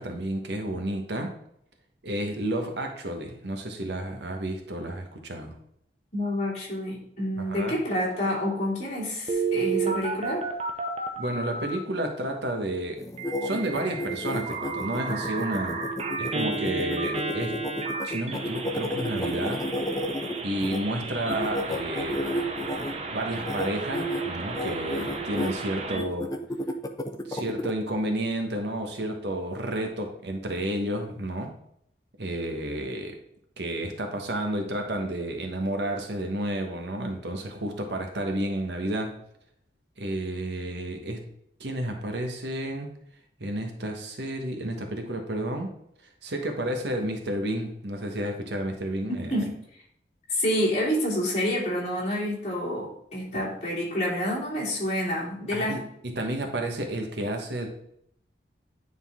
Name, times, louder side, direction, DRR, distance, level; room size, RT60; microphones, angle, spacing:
voice 1, 0.0-1.3 2.0-5.5 7.4-7.8 11.2-13.0 13.4-15.9 16.2-17.6 18.0-19.6 20.4-22.2 23.1-26.3 27.2-31.5 32.2-33.2 33.6-39.1 40.0-41.2 41.6-42.9 43.4-45.7 46.2-49.3 55.5-55.8 56.2-57.7, right 1 dB, 75° right, 4 dB, 1.2 m, -31 dB
voice 2, 6.1-10.4 49.3-49.5 50.3-55.8, equal, 40° left, -6 dB, 2.9 m, -28 dB
Telephone, 9.3-11.8 13.2-26.0, right 4 dB, 35° right, 0.7 m, -33 dB
sound 1, 13.0-20.8 21.3-22.9 23.4-23.7 23.9-24.2 24.5-25.5 26.0-27.7, left 1 dB, 20° left, 0.5 m, -31 dB
9.5 x 4.0 x 3.6 m, 0.72 s
head